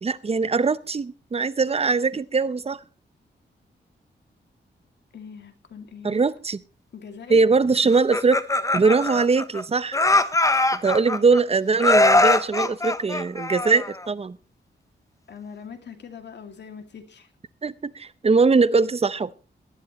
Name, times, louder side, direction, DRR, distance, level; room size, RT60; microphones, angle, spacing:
voice 1, 0.0-2.8 6.0-6.6 7.3-8.4 8.7-10.0 10.8-14.4 17.6-19.3, right 4 dB, 35° right, 15 dB, 0.7 m, -21 dB
voice 2, 5.1-6.2 6.9-7.4 11.0-11.2 15.3-17.3, left 6 dB, 70° left, 6 dB, 2.5 m, -42 dB
Laughter, 7.9-9.6 9.9-11.4 11.8-14.1, left 2 dB, 15° left, 0.8 m, -21 dB
18.5 x 12.5 x 3.1 m, 0.33 s
wide cardioid pair, 105°, 19 cm